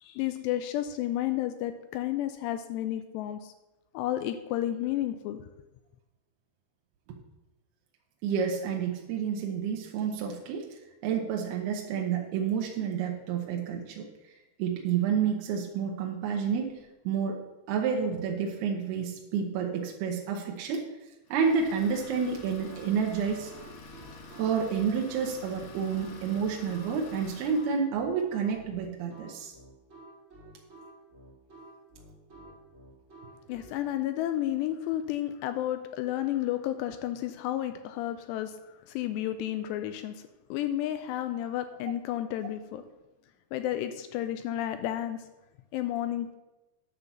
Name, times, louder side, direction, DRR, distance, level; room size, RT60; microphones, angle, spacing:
voice 1, 0.0-3.5 3.9-5.4 33.5-38.5 38.9-40.2 40.5-42.8 43.5-45.2 45.7-46.3, left 12 dB, 85° left, 9 dB, 2.6 m, -31 dB
voice 2, 8.2-14.1 14.6-20.9 21.3-23.5 24.4-29.5, right 6 dB, 75° right, 0 dB, 2.7 m, -30 dB
Idling, 21.3-27.8, left 3 dB, 60° left, 2.6 m, -48 dB
sound 1, 22.3-33.8, right 2 dB, 30° right, 1.4 m, -51 dB
9.8 x 5.8 x 6.9 m, 1.0 s
omnidirectional pair, 5.1 m